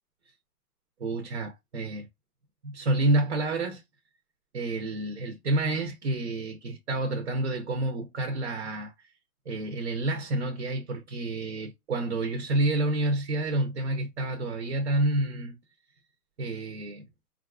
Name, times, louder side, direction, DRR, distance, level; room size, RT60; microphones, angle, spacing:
voice 1, 1.0-2.1 2.6-3.8 4.5-8.9 9.5-15.6 16.4-17.0, right 2 dB, 50° right, 0.7 m, -29 dB
3.9 x 2.4 x 2.3 m
hypercardioid pair, 175°, 46 cm